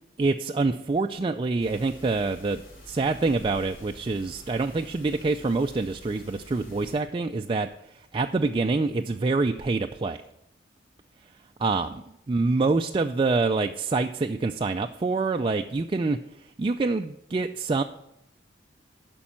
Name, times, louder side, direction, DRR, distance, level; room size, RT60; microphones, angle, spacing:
voice 1, 0.2-10.2 11.6-16.2 16.6-17.8, right 3 dB, 25° right, 5 dB, 0.3 m, -26 dB
sound 1, 1.6-7.0, left 1 dB, 50° left, 4.4 m, -48 dB
11.5 x 5.3 x 7.3 m, 0.83 s
head